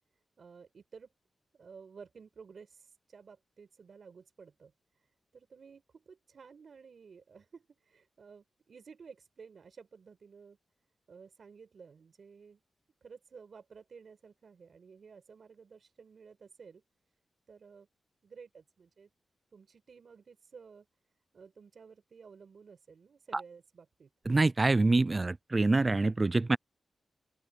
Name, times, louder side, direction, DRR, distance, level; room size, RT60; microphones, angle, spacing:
voice 1, 0.4-1.1 1.5-10.6 11.1-12.6 13.0-16.8 17.5-17.9 18.2-19.1 19.5-20.9 21.3-24.1, right 5 dB, 55° right, 6.0 m, -54 dB
voice 2, 24.3-26.6, right 3 dB, 25° right, 0.3 m, -26 dB
open air
wide cardioid pair, 120°, 0 cm